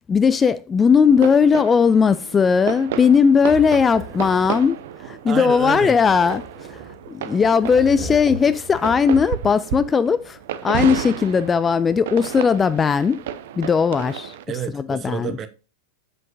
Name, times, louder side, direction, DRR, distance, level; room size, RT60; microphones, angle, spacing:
voice 1, 0.1-6.4 6.7-6.8 7.1-13.2 13.6-14.3 14.7-15.3, left 6 dB, 20° left, 0.3 m, -18 dB
sound 1, 1.0-14.4, right 11 dB, 55° right, 0.6 m, -32 dB
sound 2, 3.4-4.7 5.5-7.0 7.5-9.5, right 1 dB, 10° right, 2.3 m, -37 dB
voice 2, 5.3-6.0 14.5-15.5, right 9 dB, 30° right, 0.9 m, -29 dB
7.7 x 7.6 x 2.6 m
figure-of-eight pair, 90°, 0 cm